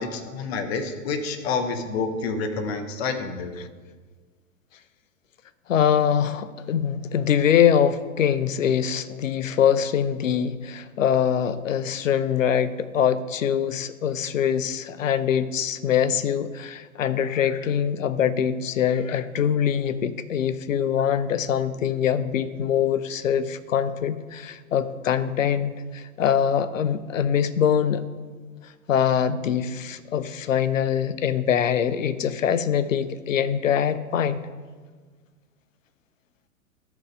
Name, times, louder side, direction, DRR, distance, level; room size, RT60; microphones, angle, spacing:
voice 1, 0.0-3.5, left 4 dB, 50° left, 8 dB, 1.1 m, -28 dB
voice 2, 5.7-28.0 28.9-34.4, left 8 dB, 65° left, 14 dB, 0.7 m, -23 dB
13.0 x 5.2 x 4.8 m, 1.5 s
figure-of-eight pair, 100°, 42 cm